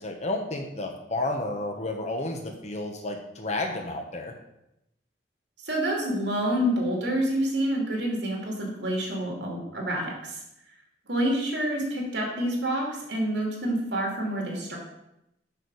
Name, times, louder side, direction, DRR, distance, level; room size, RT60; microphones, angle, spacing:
voice 1, 0.0-4.3, left 2 dB, 40° left, 3 dB, 1.0 m, -31 dB
voice 2, 5.6-10.4 11.1-14.8, right 1 dB, 80° right, -1 dB, 2.7 m, -28 dB
6.8 x 6.4 x 6.3 m, 0.85 s
head